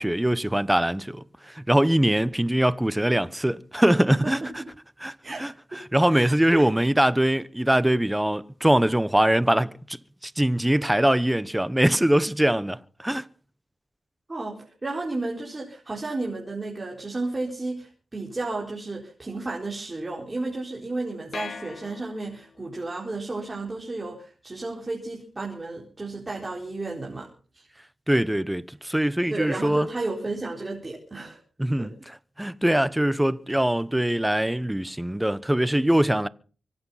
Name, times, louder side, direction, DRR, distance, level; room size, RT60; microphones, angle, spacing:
voice 1, 0.0-4.4 5.0-5.1 5.4-5.5 5.9-9.7 10.2-13.2 28.1-29.9 31.6-36.3, right 1 dB, 10° right, 1.0 m, -22 dB
voice 2, 4.1-4.7 5.2-5.8 6.1-6.7 14.3-27.3 27.5-27.6 29.3-31.4 31.8-31.9, right 2 dB, 30° right, 4.3 m, -33 dB
sound 1, 21.3-22.7, left 5 dB, 60° left, 1.9 m, -40 dB
24.5 x 8.7 x 5.7 m
cardioid pair, 55°, 0 cm